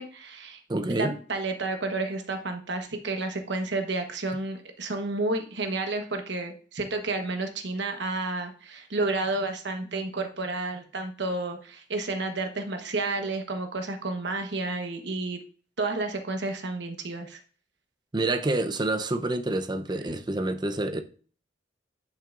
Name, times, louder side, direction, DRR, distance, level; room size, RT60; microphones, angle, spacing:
voice 1, 0.0-0.6 0.9-15.4 15.8-17.4, right 2 dB, 65° right, 1.2 m, -31 dB
voice 2, 0.7-1.2 18.1-21.0, right 2 dB, 25° right, 0.6 m, -27 dB
10.5 x 5.7 x 2.5 m
head